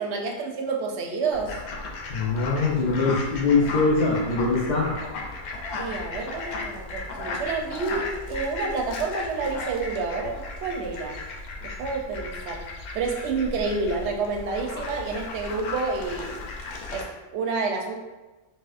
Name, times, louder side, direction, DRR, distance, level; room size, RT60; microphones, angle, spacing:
voice 1, 0.0-1.6 5.8-11.2 11.6-12.6 12.9-16.4 16.9-17.9, right 4 dB, 70° right, 2 dB, 0.8 m, -29 dB
Fowl, 1.3-17.0, left 3 dB, 80° left, 0.9 m, -35 dB
voice 2, 2.1-4.9, left 3 dB, 55° left, -6 dB, 0.5 m, -22 dB
4.2 x 2.2 x 2.4 m, 1.1 s
omnidirectional pair, 1.3 m